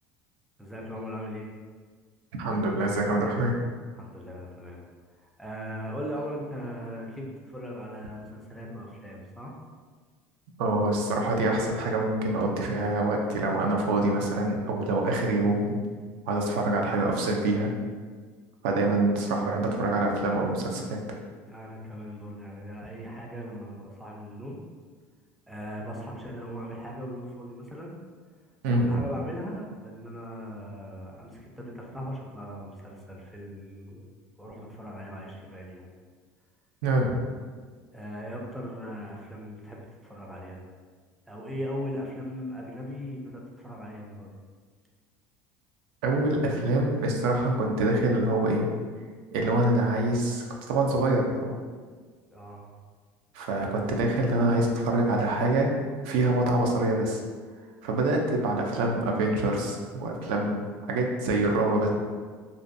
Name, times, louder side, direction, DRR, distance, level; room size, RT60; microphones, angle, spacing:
voice 1, 0.6-1.5 3.9-4.8 5.4-9.5 21.5-24.6 25.5-28.0 28.7-34.0 34.4-35.9 37.9-40.6 41.3-44.3 52.3-52.7, equal, ahead, -2 dB, 0.3 m, -39 dB
voice 2, 2.4-3.5 10.6-15.8 16.3-17.7 18.6-21.0 28.6-29.0 36.8-37.2 46.0-48.7 49.3-51.6 53.3-55.8 56.0-57.2 57.8-61.9, right 2 dB, 80° right, 1 dB, 0.4 m, -25 dB
2.5 x 2.2 x 2.5 m, 1.5 s
cardioid pair, 145°, 6 cm